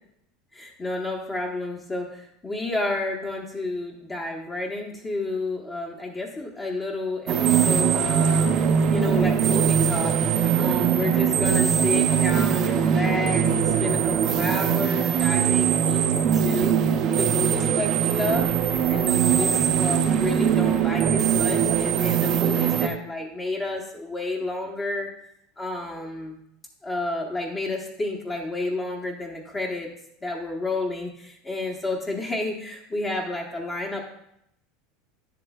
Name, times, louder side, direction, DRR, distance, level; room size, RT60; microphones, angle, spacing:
voice 1, 0.5-8.6 8.9-16.7 17.2-18.5 18.9-25.1 25.6-26.3 26.8-29.9 30.2-34.0, left 2 dB, 20° left, -1 dB, 1.0 m, -30 dB
sound 1, 7.3-22.9, right 8 dB, 50° right, 0.6 m, -21 dB
10.0 x 7.6 x 2.3 m, 0.75 s
supercardioid pair, 115°, 0 cm